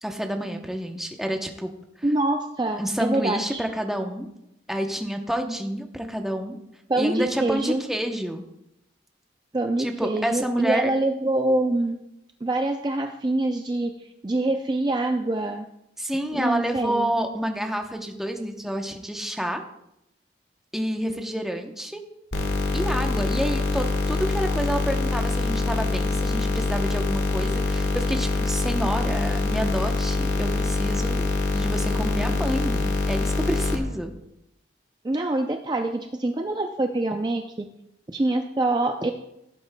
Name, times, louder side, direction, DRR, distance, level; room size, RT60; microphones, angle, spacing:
voice 1, 0.0-1.7 2.8-4.3 4.7-6.6 7.0-8.4 9.8-10.9 16.0-19.6 20.7-22.0 22.7-31.3 31.5-34.1, right 1 dB, ahead, 3 dB, 0.8 m, -29 dB
voice 2, 2.0-3.6 6.9-7.8 9.5-12.0 12.4-15.7 16.3-17.1 35.0-37.5 38.1-39.1, right 2 dB, 25° right, 4 dB, 0.4 m, -25 dB
sound 1, 22.3-33.8, left 3 dB, 80° left, 1.5 m, -25 dB
16.0 x 8.3 x 2.2 m, 0.83 s
head